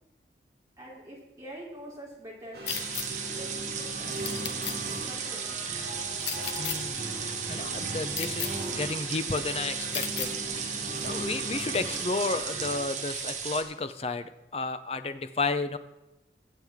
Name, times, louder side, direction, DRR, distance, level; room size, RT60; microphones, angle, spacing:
voice 1, 0.8-2.6 3.3-5.5, right 1 dB, 20° right, -4 dB, 3.3 m, -46 dB
sound 1, 2.5-12.8, right 1 dB, 70° right, 3.4 m, -39 dB
sound 2, 2.7-3.1 4.2-4.8 6.2-6.8 8.1-8.5 9.9-10.3, left 10 dB, 85° left, 0.8 m, -33 dB
sound 3, 2.7-13.6, right 6 dB, 45° right, 1.4 m, -35 dB
voice 2, 6.5-7.1 7.5-15.8, left 3 dB, 35° left, 11 dB, 0.6 m, -32 dB
21.5 x 7.5 x 3.7 m, 0.97 s
head